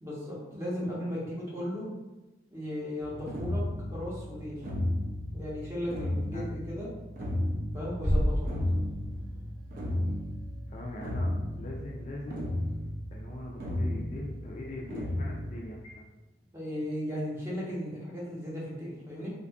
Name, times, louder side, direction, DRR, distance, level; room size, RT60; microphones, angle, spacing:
voice 1, 0.0-1.9 2.5-3.6 3.9-4.6 5.3-6.9 7.7-8.5 16.5-19.3, equal, 15° right, -6 dB, 0.7 m, -36 dB
sound 1, 3.0-15.5, left 1 dB, 50° right, 0.4 m, -34 dB
sound 2, 8.0-9.6, equal, 80° right, 1.0 m, -29 dB
voice 2, 10.7-12.5 13.1-16.0, left 1 dB, 40° left, -2 dB, 0.3 m, -41 dB
2.5 x 2.3 x 2.3 m, 1.1 s
head